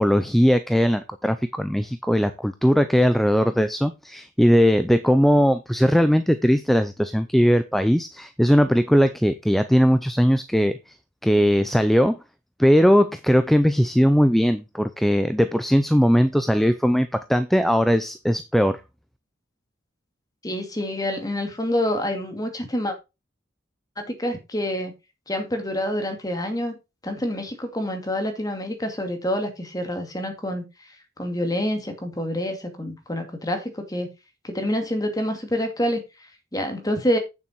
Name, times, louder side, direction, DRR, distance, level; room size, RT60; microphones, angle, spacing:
voice 1, 0.0-10.8 11.2-12.2 12.6-18.8, equal, ahead, 0.5 m, -19 dB
voice 2, 20.4-23.0 24.0-24.9 25.3-26.7 27.0-30.6 31.2-34.1 34.4-36.0 36.5-37.2, left 1 dB, 20° left, 2.3 m, -27 dB
9.0 x 7.0 x 4.5 m
head